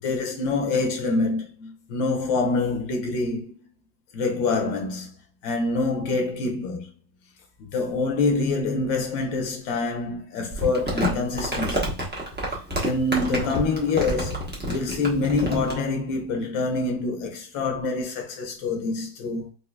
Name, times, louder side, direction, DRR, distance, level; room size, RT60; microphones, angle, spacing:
voice 1, 0.0-3.5 4.1-5.1 5.4-6.9 7.6-12.0 12.5-19.5, left 3 dB, 90° left, 1.6 m, -26 dB
Crumpling crinkling, 10.5-15.8, equal, 10° right, 0.4 m, -28 dB
4.6 x 2.5 x 2.3 m
omnidirectional pair, 2.0 m